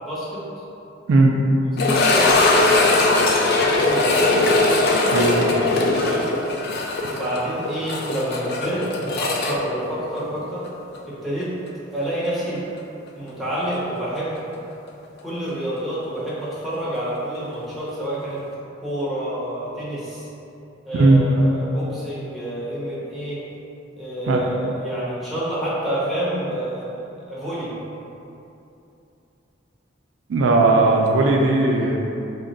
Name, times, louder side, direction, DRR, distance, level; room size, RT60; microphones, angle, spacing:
voice 1, 0.0-0.4 1.6-2.4 3.5-4.2 6.0-6.3 7.1-8.9 9.2-10.6 11.0-11.5 11.9-12.6 13.1-14.4 15.2-18.4 18.8-20.3 20.8-23.4 24.0-27.7, right 1 dB, ahead, -10 dB, 0.8 m, -28 dB
sound 1, 1.8-10.7 10.9-11.0 11.7-11.8 14.4-14.5, left 2 dB, 55° left, 0.4 m, -20 dB
voice 2, 5.1-5.6 20.9-21.2 24.3-24.4 30.3-32.0, right 2 dB, 75° right, 0 dB, 0.4 m, -17 dB
3.6 x 2.1 x 3.9 m, 2.8 s
head